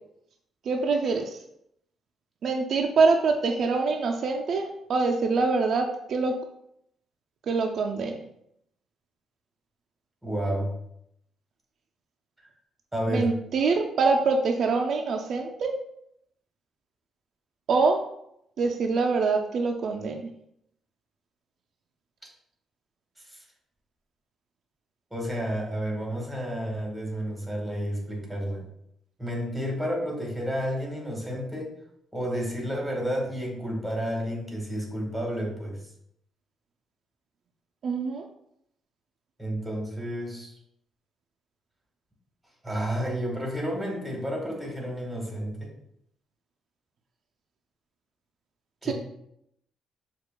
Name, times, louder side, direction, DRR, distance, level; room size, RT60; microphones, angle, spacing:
voice 1, 0.7-1.4 2.4-6.4 7.5-8.2 13.1-15.7 17.7-18.0 18.6-20.3 37.8-38.2 48.8-48.9, right 4 dB, 60° right, 3 dB, 0.3 m, -25 dB
voice 2, 10.2-10.7 12.4-12.5 12.9-13.3 23.2-23.4 25.1-28.6 29.2-31.7 32.1-35.8 39.4-40.6 42.6-45.7 48.8-48.9, equal, 5° right, -1 dB, 1.3 m, -31 dB
6.4 x 2.3 x 2.2 m, 0.75 s
cardioid pair, 90°, 0 cm